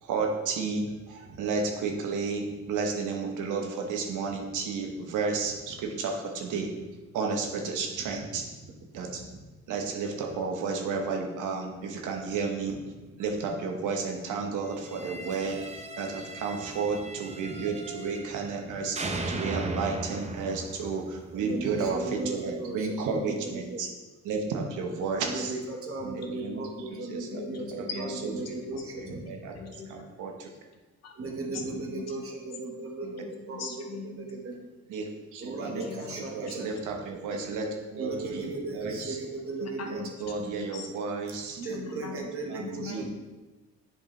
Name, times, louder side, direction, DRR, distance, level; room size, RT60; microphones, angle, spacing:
voice 1, 0.0-6.7 7.1-8.4 8.9-9.2 9.7-12.8 13.2-19.0 19.3-23.9 24.2-25.5 26.0-28.1 28.4-28.5 28.9-29.5 29.9-30.5 34.9-39.2 39.8-41.6 42.1-42.2 42.5-43.1, right 4 dB, 85° right, 2 dB, 1.0 m, -32 dB
voice 2, 8.0-8.4 15.3-15.4 17.5-17.6 18.6-18.7 21.3-23.8 25.3-28.1 28.3-29.2 31.1-33.7 34.1-34.5 35.4-36.7 37.3-37.4 37.9-40.0 41.6-43.1, right 2 dB, 50° right, 1 dB, 1.4 m, -36 dB
sound 1, 14.8-18.6 19.0-22.0, right 2 dB, 25° right, 0.6 m, -38 dB
voice 3, 26.8-28.3 28.6-29.2 29.5-30.2 31.0-31.2 31.5-32.1 33.0-34.2 35.6-37.0 39.6-40.9 41.6-43.1, left 6 dB, 60° left, 3 dB, 1.1 m, -42 dB
7.6 x 5.1 x 3.2 m, 1.2 s
cardioid pair, 90°, 30 cm